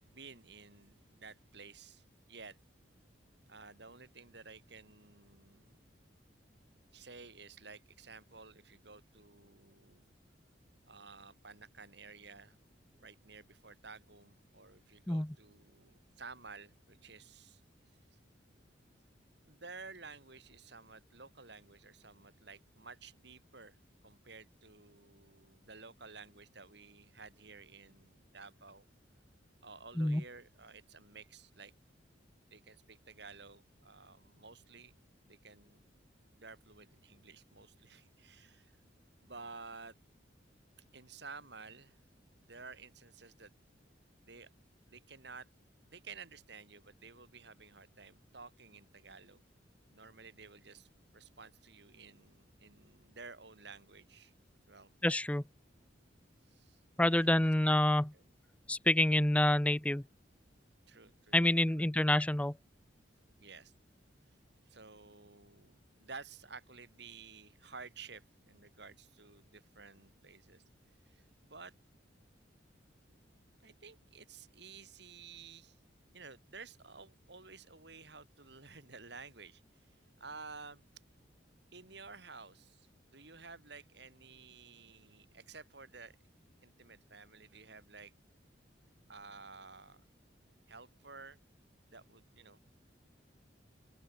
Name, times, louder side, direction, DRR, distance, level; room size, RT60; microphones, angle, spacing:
voice 1, 0.0-2.6 3.5-5.8 6.9-10.1 10.8-12.6 12.9-17.6 19.5-23.8 24.0-28.8 29.6-31.7 32.5-35.0 35.3-35.9 36.3-38.8 39.2-40.0 40.8-42.0 42.4-43.5 44.2-44.5 44.9-45.5 45.9-49.4 49.9-50.9 51.1-54.3 54.7-54.9 56.5-56.8 57.1-57.5 57.8-58.2 60.9-61.9 63.4-63.7 64.7-70.6 71.0-71.7 73.6-75.8 76.1-79.6 80.2-80.8 81.7-86.2 86.6-88.1 89.1-90.0 90.7-91.4 91.9-92.6, right 4 dB, 60° right, 4.5 m, -53 dB
voice 2, 55.0-55.4 57.0-58.1 58.7-60.0 61.3-62.5, left 1 dB, 5° left, 0.5 m, -27 dB
open air
head